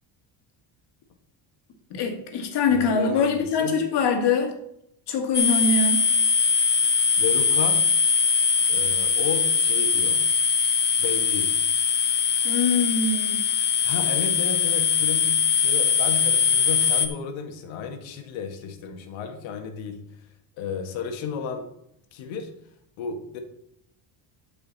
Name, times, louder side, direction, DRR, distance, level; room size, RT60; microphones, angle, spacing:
voice 1, 1.9-4.5 5.1-6.1 12.4-13.4, left 4 dB, 60° left, 4 dB, 2.1 m, -23 dB
voice 2, 2.7-3.8 7.2-7.8 8.7-10.2 11.0-11.5 13.8-20.0 20.6-21.7 22.1-22.5 23.0-23.4, left 6 dB, 75° left, 5 dB, 1.8 m, -33 dB
sound 1, 5.3-17.1, left 6 dB, 20° left, 0.9 m, -22 dB
12.5 x 5.6 x 4.1 m, 0.76 s
cardioid pair, 130°, 47 cm